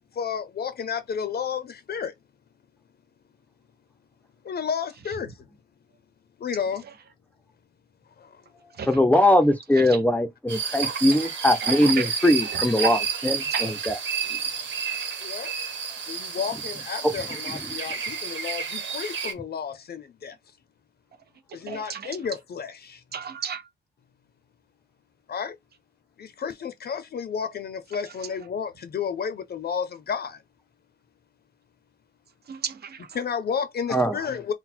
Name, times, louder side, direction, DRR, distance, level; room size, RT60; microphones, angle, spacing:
voice 1, 0.2-2.1 4.4-5.3 6.4-6.8 8.2-8.3 15.2-15.5 16.1-20.3 21.5-23.0 25.3-25.6 26.2-30.4 33.1-34.5, left 7 dB, 60° left, 0.6 m, -31 dB
voice 2, 8.9-13.0 13.2-13.9 33.9-34.2, left 1 dB, 10° left, 0.5 m, -21 dB
sound 1, 10.5-19.3, right 6 dB, 80° right, 1.4 m, -30 dB
voice 3, 10.8-11.3 11.6-12.1 12.4-13.0 13.5-13.9 14.8-15.2 18.8-18.9 21.5-22.2 23.1-23.7 28.2-28.3 32.5-33.2, right 6 dB, 60° right, 0.7 m, -34 dB
3.9 x 2.2 x 4.3 m
wide cardioid pair, 180°, 19 cm